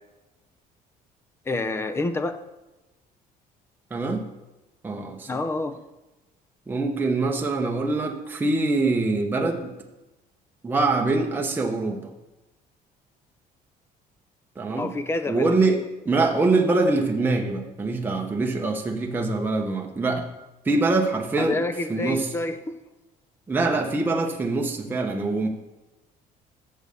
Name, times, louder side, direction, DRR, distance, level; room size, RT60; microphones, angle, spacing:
voice 1, 1.5-2.4 5.3-5.8 14.7-15.5 21.4-22.8, left 2 dB, 15° left, 10 dB, 0.6 m, -28 dB
voice 2, 3.9-4.2 4.8-5.3 6.7-9.7 10.6-12.1 14.6-14.9 15.3-15.8 16.1-20.3 20.6-21.6 21.9-22.3 23.5-25.5, right 3 dB, 15° right, 1 dB, 0.9 m, -24 dB
7.1 x 6.5 x 6.8 m, 1.0 s
cardioid pair, 145°, 15 cm